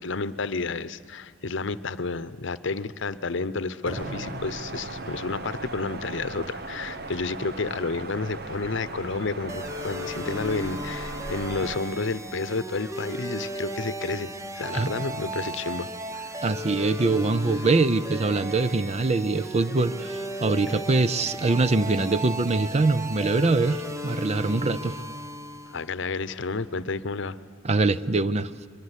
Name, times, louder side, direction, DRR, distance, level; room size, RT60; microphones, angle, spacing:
voice 1, 0.0-14.3 14.6-15.9 16.1-16.4 20.7-20.8 25.7-27.4, left 3 dB, 65° left, 15 dB, 0.8 m, -31 dB
sound 1, 3.9-11.8, right 3 dB, 55° right, 1.2 m, -38 dB
sound 2, 3.9-11.9, equal, 75° right, 6.6 m, -44 dB
sound 3, 9.5-25.9, right 1 dB, 15° right, 1.0 m, -35 dB
voice 2, 16.4-25.0 27.6-28.5, right 3 dB, 35° right, 14 dB, 0.6 m, -23 dB
23.0 x 23.0 x 9.9 m, 2.2 s
head